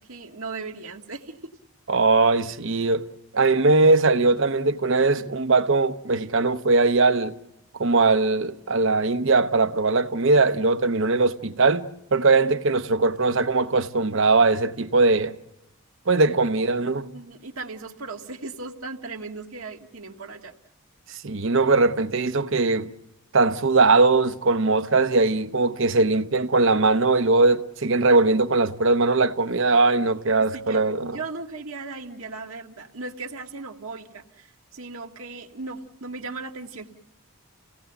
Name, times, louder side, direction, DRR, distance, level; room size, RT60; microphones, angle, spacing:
voice 1, 0.1-1.5 16.4-16.5 17.0-20.5 30.5-36.9, right 3 dB, 75° right, 1.7 m, -37 dB
voice 2, 1.9-3.0 3.3-7.4 7.8-15.3 16.1-17.1 21.2-22.9 23.3-31.2, right 3 dB, 60° right, 0.8 m, -20 dB
29.0 x 17.5 x 7.9 m
head